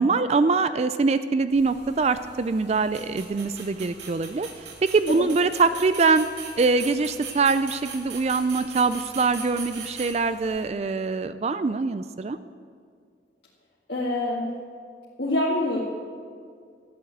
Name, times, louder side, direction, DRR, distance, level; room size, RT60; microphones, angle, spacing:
voice 1, 0.0-4.5 4.8-6.3 6.6-12.4, right 4 dB, 35° right, 12 dB, 0.4 m, -23 dB
sound 1, 1.5-10.7, right 5 dB, 80° right, 2.3 m, -41 dB
voice 2, 13.9-14.6 15.2-15.8, left 1 dB, 60° left, -6 dB, 2.1 m, -26 dB
13.0 x 9.0 x 8.1 m, 2.2 s
head